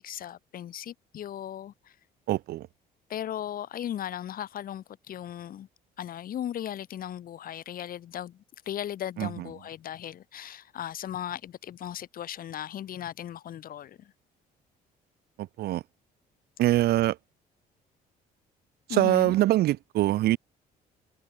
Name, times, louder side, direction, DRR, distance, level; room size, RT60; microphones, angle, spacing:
voice 1, 0.0-1.9 3.1-5.7 6.0-14.1 18.9-19.3, left 11 dB, 60° left, 6.6 m, -37 dB
voice 2, 2.3-2.7 9.2-9.3 15.4-15.8 16.6-17.2 18.9-20.4, right 15 dB, 70° right, 0.9 m, -23 dB
cardioid pair, 110°, 17 cm